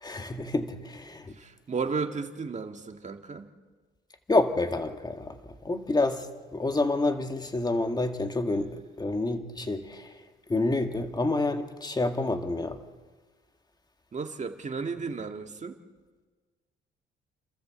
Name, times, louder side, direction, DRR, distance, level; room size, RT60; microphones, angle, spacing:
voice 1, 0.0-1.3 4.3-5.3 5.6-6.3 6.5-10.1 10.5-12.8, left 2 dB, 20° left, 6 dB, 2.0 m, -28 dB
voice 2, 1.4-3.5 14.1-15.8, right 5 dB, 35° right, 6 dB, 1.8 m, -34 dB
29.5 x 13.5 x 8.1 m, 1.4 s
cardioid pair, 90°, 20 cm